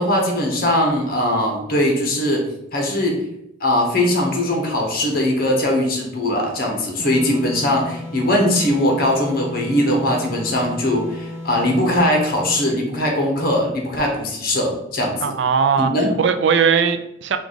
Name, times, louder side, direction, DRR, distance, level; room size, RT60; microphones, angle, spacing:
voice 1, 0.0-3.2 3.6-15.3 15.8-16.1, left 1 dB, 50° left, 0 dB, 1.0 m, -20 dB
sound 1, 7.0-12.8, left 1 dB, 30° left, 1.6 m, -33 dB
voice 2, 15.2-15.9 16.2-17.4, right 6 dB, 70° right, 8 dB, 0.4 m, -18 dB
4.6 x 2.5 x 3.8 m, 0.81 s
head